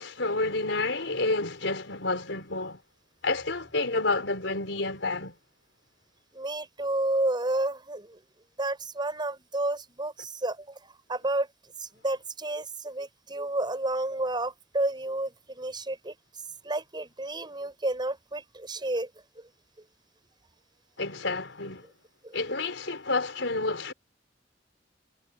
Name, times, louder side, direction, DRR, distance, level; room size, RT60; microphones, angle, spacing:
voice 1, 0.0-2.8 3.2-5.3 21.0-21.9 22.3-23.9, left 3 dB, 90° left, 4.3 m, -29 dB
voice 2, 6.3-8.2 8.6-11.5 11.8-16.1 16.6-19.1 22.2-22.3, right 2 dB, 25° right, 5.6 m, -31 dB
head